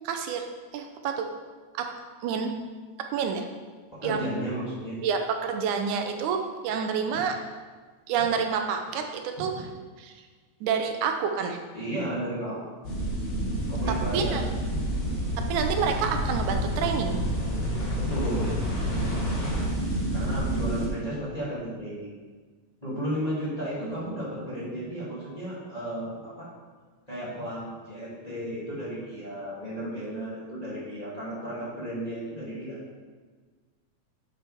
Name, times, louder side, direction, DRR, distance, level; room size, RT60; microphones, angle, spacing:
voice 1, 0.1-0.4 0.7-1.3 1.8-1.9 2.2-2.5 3.1-3.4 4.0-4.2 5.0-6.4 6.6-7.3 8.1-9.5 10.6-11.6 14.1-14.4 15.5-17.2, right 6 dB, 85° right, 5 dB, 2.2 m, -28 dB
voice 2, 3.9-5.0 11.7-12.6 13.7-14.4 18.0-18.6 18.9-19.2 20.1-22.1 22.8-26.5 27.1-32.8, right 1 dB, 15° left, -10 dB, 2.5 m, -34 dB
sound 1, 12.8-20.9, equal, 65° left, 3.6 m, -28 dB
8.4 x 7.6 x 3.5 m, 1.4 s
omnidirectional pair, 3.4 m